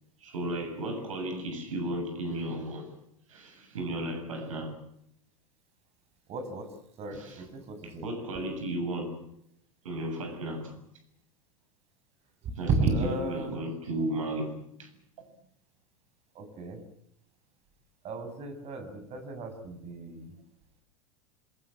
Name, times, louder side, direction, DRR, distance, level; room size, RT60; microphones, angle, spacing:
voice 1, 0.2-2.9 3.3-4.8 7.1-7.4 7.8-9.2 9.8-10.7 12.6-14.9, right 1 dB, 70° right, 7.2 m, -34 dB
voice 2, 6.3-6.7 7.0-8.0 12.4-13.6 16.3-16.8 18.0-20.3, right 3 dB, 35° right, 6.6 m, -33 dB
27.5 x 21.5 x 7.6 m
figure-of-eight pair, 80°, 18 cm